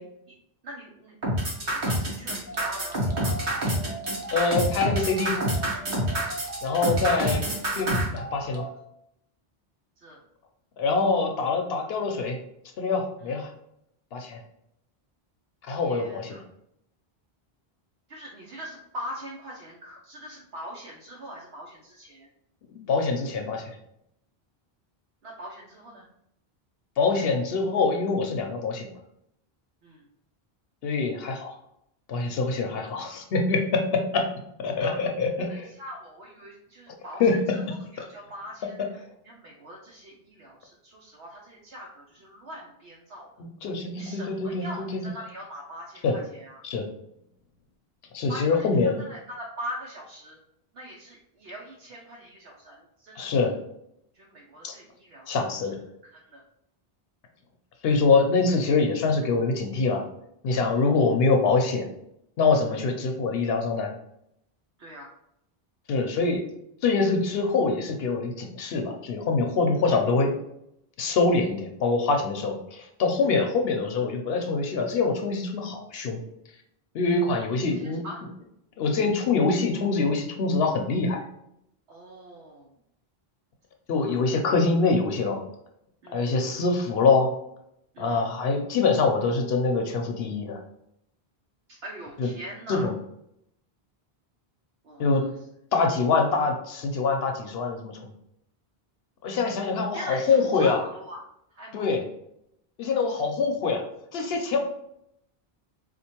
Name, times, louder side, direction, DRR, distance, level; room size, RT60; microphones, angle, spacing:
voice 1, 0.6-1.2 1.5-3.7 7.1-7.3 10.0-10.2 13.2-13.4 15.7-16.4 18.1-22.3 25.2-26.1 29.8-30.0 34.6-35.0 35.5-37.3 37.7-38.8 39.2-43.3 43.9-46.6 48.3-48.7 49.0-50.4 50.7-53.5 54.1-55.4 56.1-56.4 60.7-61.0 62.7-62.8 64.8-65.1 69.8-69.9 77.5-78.2 81.9-82.7 83.9-84.2 86.0-86.4 87.9-88.2 91.7-92.9 94.8-95.3 99.9-101.2 101.5-101.9, equal, 90° right, -3 dB, 1.0 m, -42 dB
sound 1, 1.2-8.0, right 1 dB, 60° right, 1.2 m, -27 dB
sound 2, 2.5-8.7, right 2 dB, 20° right, 0.5 m, -39 dB
voice 2, 4.3-5.3 6.6-7.4 7.8-8.6 10.8-12.4 12.8-13.5 14.1-14.4 15.6-16.4 22.7-23.8 27.0-28.9 30.8-31.5 32.1-34.2 34.6-35.7 37.2-37.6 38.0-38.1 43.4-44.6 46.0-46.1 46.6-46.8 48.1-49.0 53.2-53.5 54.6-54.7 55.3-55.8 57.8-60.0 60.4-61.9 62.4-63.9 65.9-66.4 66.8-70.3 71.0-76.2 76.9-78.0 78.8-81.2 83.9-85.4 86.1-87.3 88.0-90.6 92.2-92.3 92.7-92.9 95.0-95.2 95.7-98.1 99.2-100.8 101.7-102.0 102.8-103.8 104.1-104.6, left 4 dB, 75° left, 3 dB, 0.8 m, -24 dB
4.3 x 2.4 x 2.8 m, 0.77 s
omnidirectional pair, 1.0 m